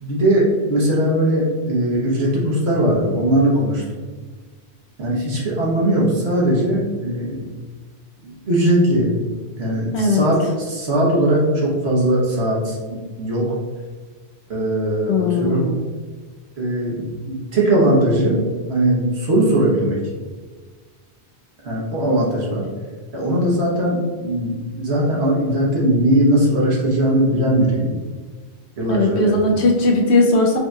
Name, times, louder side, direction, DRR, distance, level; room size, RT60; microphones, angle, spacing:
voice 1, 0.0-3.8 5.0-7.5 8.2-9.1 9.6-13.5 14.5-15.7 16.6-18.4 18.7-20.0 21.6-22.7 23.1-27.9 28.8-29.4, right 1 dB, 70° right, -4 dB, 1.3 m, -19 dB
voice 2, 9.9-10.2 15.1-15.8 28.9-30.6, left 2 dB, 75° left, -1 dB, 1.0 m, -18 dB
4.8 x 2.8 x 2.3 m, 1.4 s
omnidirectional pair, 1.1 m